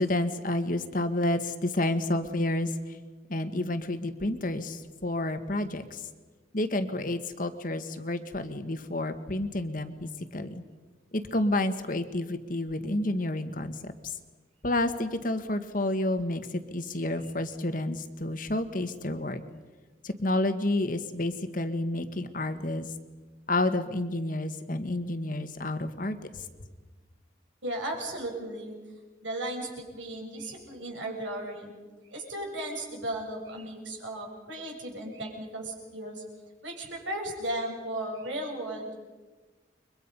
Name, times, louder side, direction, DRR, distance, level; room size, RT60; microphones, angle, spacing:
voice 1, 0.0-3.0 3.3-6.0 6.5-10.6 11.1-14.2 14.6-19.4 20.0-22.9 23.5-26.4, left 1 dB, 45° left, 8 dB, 1.6 m, -30 dB
voice 2, 27.6-28.8 29.2-31.7 32.1-36.2 36.6-38.9, right 1 dB, 80° right, 1 dB, 7.6 m, -35 dB
30.0 x 24.0 x 5.5 m, 1.3 s
head